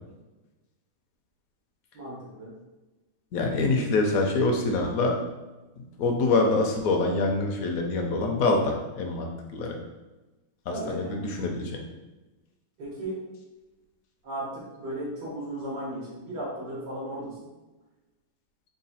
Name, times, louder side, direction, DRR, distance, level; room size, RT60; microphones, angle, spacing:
voice 1, 1.9-2.5 10.7-11.3 12.8-13.2 14.2-17.5, right 1 dB, 85° right, -5 dB, 1.8 m, -35 dB
voice 2, 3.3-5.2 6.0-9.8 10.9-11.8, left 3 dB, 65° left, 2 dB, 1.0 m, -25 dB
3.9 x 2.3 x 4.0 m, 1.1 s
omnidirectional pair, 1.8 m